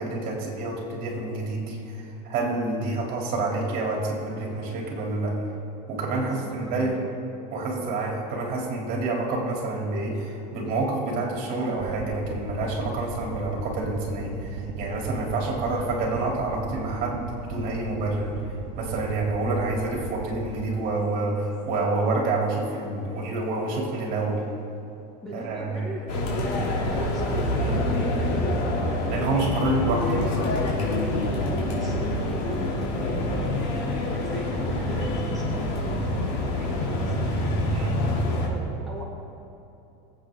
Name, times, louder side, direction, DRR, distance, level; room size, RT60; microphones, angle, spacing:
voice 1, 0.0-5.4 5.9-7.0 7.5-24.4 25.3-25.9 27.6-27.8 29.1-30.2 37.7-37.9, right 2 dB, 45° right, -1 dB, 3.5 m, -28 dB
voice 2, 6.3-7.0 25.2-29.8 30.1-30.3 31.6-37.6 38.0-39.0, right 1 dB, ahead, -7 dB, 2.0 m, -39 dB
sound 1, 11.8-20.5, right 5 dB, 70° right, 1.2 m, -37 dB
sound 2, 26.1-38.5, left 1 dB, 60° left, 3.4 m, -26 dB
24.5 x 8.4 x 3.9 m, 2.8 s
supercardioid pair, 145°, 20 cm